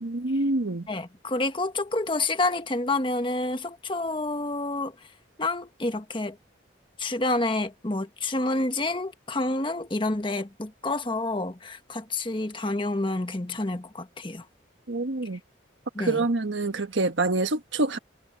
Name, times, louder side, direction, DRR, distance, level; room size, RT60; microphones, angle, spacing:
voice 1, 0.0-0.9 14.9-15.4 16.0-18.0, right 2 dB, 85° right, 1.3 m, -26 dB
voice 2, 0.9-4.9 5.4-6.4 7.0-14.4 15.9-16.2, left 2 dB, 25° left, 1.3 m, -28 dB
head